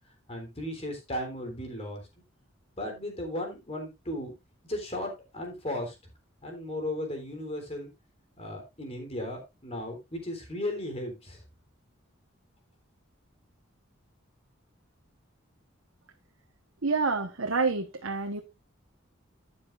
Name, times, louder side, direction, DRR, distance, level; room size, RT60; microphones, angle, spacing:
voice 1, 0.3-2.0 2.8-4.3 4.7-6.0 6.4-7.9 8.4-11.4, left 1 dB, 30° left, 4 dB, 3.6 m, -35 dB
voice 2, 16.8-18.4, right 4 dB, 85° right, 3 dB, 1.2 m, -28 dB
12.0 x 9.6 x 2.5 m, 0.23 s
head